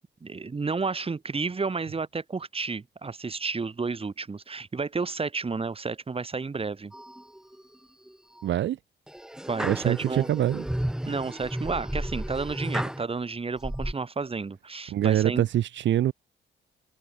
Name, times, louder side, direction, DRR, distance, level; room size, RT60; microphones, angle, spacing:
voice 1, 0.2-6.9 9.5-10.3 11.1-15.5, right 4 dB, 30° right, 3.8 m, -31 dB
sound 1, 6.9-7.6 8.1-8.5 9.1-13.0 13.6-13.9, right 1 dB, 5° right, 0.9 m, -33 dB
voice 2, 8.4-8.8 9.6-10.6 14.9-16.1, right 12 dB, 65° right, 1.0 m, -24 dB
cardioid pair, 90°, 20 cm